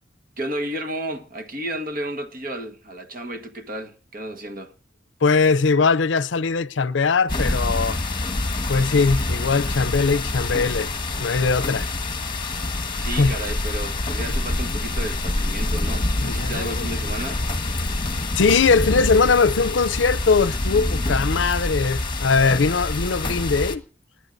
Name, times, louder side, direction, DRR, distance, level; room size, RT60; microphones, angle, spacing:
voice 1, 0.4-4.7 13.0-17.4, right 1 dB, 50° right, 1.6 m, -32 dB
voice 2, 5.2-8.0 8.7-10.9 11.2-11.9 13.2-13.3 16.2-16.9 18.4-23.8, left 4 dB, 75° left, 0.6 m, -20 dB
sound 1, 7.3-23.8, left 2 dB, 25° left, 1.4 m, -26 dB
29.5 x 11.5 x 2.7 m
head